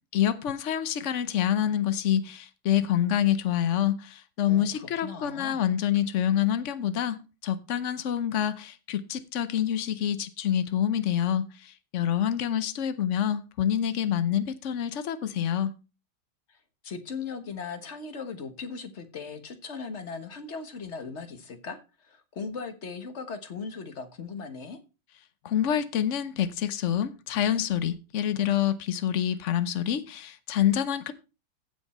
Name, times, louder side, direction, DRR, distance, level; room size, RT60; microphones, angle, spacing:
voice 1, 0.1-15.7 25.4-31.1, left 10 dB, 85° left, 0.6 m, -27 dB
voice 2, 4.4-5.6 16.5-24.8, left 5 dB, 40° left, 1.4 m, -38 dB
15.5 x 5.3 x 4.2 m
omnidirectional pair, 2.3 m